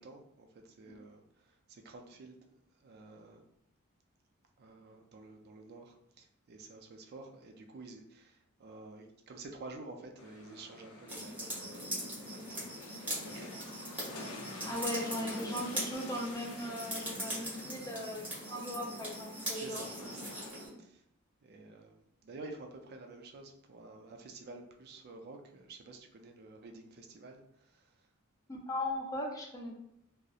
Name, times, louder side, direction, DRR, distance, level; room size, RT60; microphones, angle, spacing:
voice 1, 0.0-3.4 4.6-11.9 12.2-14.6 15.2-15.6 19.4-20.4 20.8-21.0 21.4-28.1, right 2 dB, 50° right, 4 dB, 0.4 m, -51 dB
sound 1, 10.2-20.5, left 2 dB, 85° left, 0.5 m, -49 dB
sound 2, 11.1-20.7, equal, 10° right, 1.1 m, -41 dB
voice 2, 14.7-19.9 28.5-29.8, left 1 dB, 15° left, -1 dB, 0.5 m, -38 dB
2.7 x 2.0 x 2.3 m, 0.78 s
head